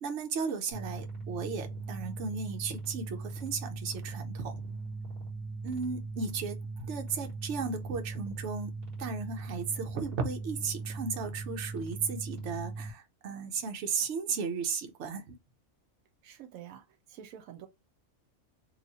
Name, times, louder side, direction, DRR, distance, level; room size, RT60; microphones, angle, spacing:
voice 1, 0.0-4.6 5.6-15.4, right 5 dB, 60° right, 1.0 m, -35 dB
sound 1, 0.7-12.9, right 3 dB, 45° right, 1.6 m, -39 dB
voice 2, 16.2-17.7, right 10 dB, 90° right, 1.0 m, -48 dB
3.0 x 2.4 x 3.9 m
omnidirectional pair, 1.4 m